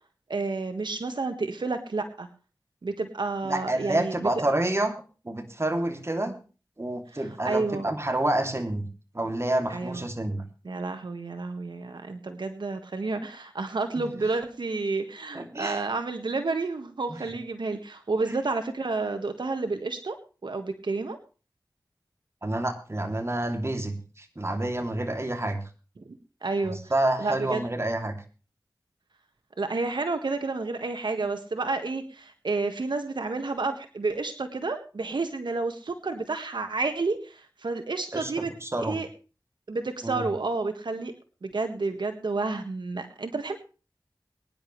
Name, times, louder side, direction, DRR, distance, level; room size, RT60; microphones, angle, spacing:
voice 1, 0.3-2.3 2.8-4.4 6.2-6.3 7.4-7.9 9.7-10.0 10.6-20.2 20.4-21.2 26.4-26.8 27.2-27.7 29.6-38.5 38.8-39.1 39.7-41.1 41.4-43.6, right 3 dB, 85° right, 7 dB, 1.6 m, -30 dB
voice 2, 3.4-6.3 6.8-8.8 9.1-10.4 13.9-14.1 15.3-15.8 17.1-17.2 18.2-18.4 22.4-25.6 26.6-28.1 38.1-39.0 40.0-40.3, right 1 dB, 35° right, 4 dB, 2.8 m, -28 dB
22.5 x 10.5 x 3.3 m, 0.35 s
wide cardioid pair, 55°, 8 cm